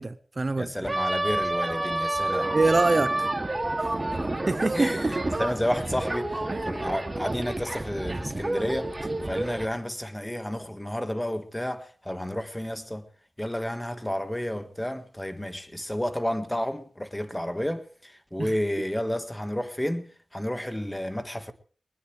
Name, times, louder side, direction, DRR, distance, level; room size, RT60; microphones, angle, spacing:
voice 1, 0.0-0.7 2.5-3.3 4.5-5.3 6.5-6.6 18.4-18.5, right 3 dB, 50° right, 0.8 m, -25 dB
voice 2, 0.6-2.5 4.1-4.3 4.7-13.1 13.4-21.5, left 1 dB, 15° left, 1.6 m, -31 dB
sound 1, 0.8-9.7, right 2 dB, 30° right, 2.5 m, -29 dB
20.5 x 20.0 x 3.3 m
wide cardioid pair, 55°, 0 cm